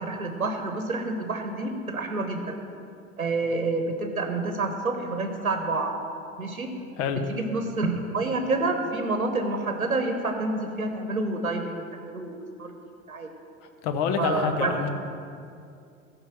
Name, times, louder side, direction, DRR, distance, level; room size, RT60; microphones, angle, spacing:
voice 1, 0.0-2.5 3.2-6.0 6.4-6.7 7.3-12.7 13.1-13.3 14.2-14.8, right 3 dB, 90° right, 5 dB, 0.9 m, -28 dB
voice 2, 13.8-14.9, left 6 dB, 50° left, 7 dB, 1.1 m, -26 dB
14.5 x 5.2 x 6.1 m, 2.4 s
figure-of-eight pair, 75°, 41 cm